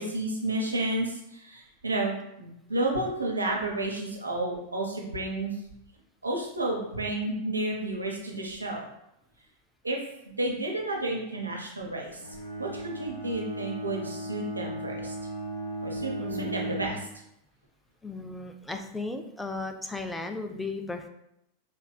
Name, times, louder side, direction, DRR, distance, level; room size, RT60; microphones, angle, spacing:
voice 1, 0.0-5.5 6.2-8.9 9.8-10.0 10.4-15.1 15.8-17.0, right 2 dB, 80° right, -1 dB, 0.7 m, -31 dB
Bowed string instrument, 12.2-17.1, right 1 dB, 60° left, 0.8 m, -36 dB
voice 2, 16.2-17.0 18.0-21.1, left 3 dB, 5° left, 5 dB, 0.4 m, -36 dB
5.3 x 2.4 x 2.3 m, 0.81 s
figure-of-eight pair, 90°, 0 cm